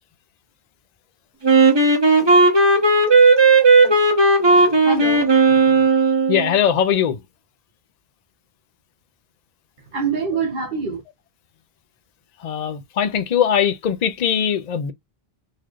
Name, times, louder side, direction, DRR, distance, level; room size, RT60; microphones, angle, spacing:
Wind instrument woodwind instrument, 1.4-6.5, right 3 dB, 25° right, 1.1 m, -14 dB
voice 1, 4.6-5.8 9.9-11.0, right 4 dB, 55° right, 1.0 m, -26 dB
voice 2, 6.3-7.2 12.4-14.9, left 8 dB, 50° left, 0.6 m, -20 dB
4.1 x 3.1 x 2.4 m
omnidirectional pair, 1.0 m